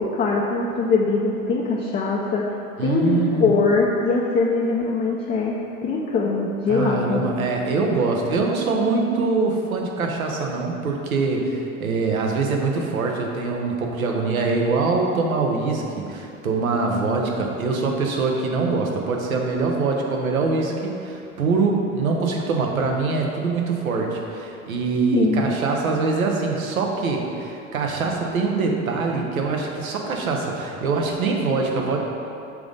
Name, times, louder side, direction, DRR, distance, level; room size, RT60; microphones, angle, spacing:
voice 1, 0.0-2.4 2.8-7.3 25.1-25.5, left 4 dB, 20° left, -3 dB, 0.6 m, -22 dB
voice 2, 2.8-3.6 6.7-32.0, right 4 dB, 75° right, 1 dB, 1.0 m, -23 dB
6.0 x 3.8 x 5.2 m, 2.7 s
figure-of-eight pair, 80°, 42 cm